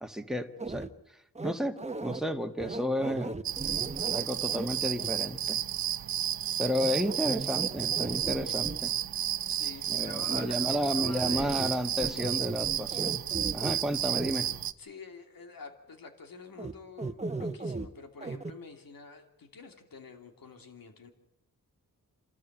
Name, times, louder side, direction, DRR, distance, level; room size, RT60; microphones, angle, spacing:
voice 1, 0.0-0.9 1.4-3.3 4.1-5.6 6.6-8.9 9.9-13.2 13.5-14.5, equal, ahead, 5 dB, 1.8 m, -32 dB
sound 1, 0.6-0.9 1.3-2.2 2.6-4.7 5.0-5.1 6.8-8.8 10.3-10.5 11.0-11.7 12.0-13.8 14.1-14.3 16.6-16.7 17.0-17.9 18.2-18.5, right 3 dB, 20° right, 1.1 m, -37 dB
sound 2, 3.4-14.7, right 11 dB, 90° right, 0.8 m, -32 dB
voice 2, 9.5-11.7 14.8-21.1, left 4 dB, 75° left, 5 dB, 2.9 m, -47 dB
27.5 x 13.5 x 9.1 m, 0.85 s
cardioid pair, 65°, 35 cm